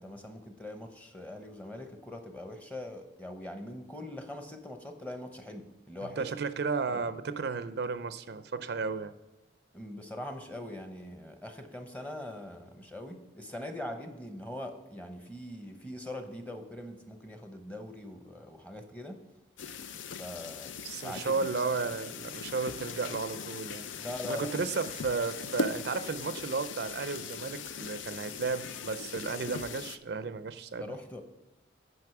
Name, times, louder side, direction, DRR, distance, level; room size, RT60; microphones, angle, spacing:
voice 1, 0.0-6.3 6.9-7.2 9.7-19.2 20.2-21.5 24.0-24.7 30.8-31.2, left 1 dB, 10° left, 5 dB, 0.8 m, -42 dB
voice 2, 6.2-9.1 20.8-23.9 24.3-31.0, right 4 dB, 60° right, 12 dB, 0.4 m, -33 dB
sound 1, 19.6-30.0, left 5 dB, 85° left, 0.5 m, -40 dB
9.4 x 5.3 x 5.9 m, 1.1 s
head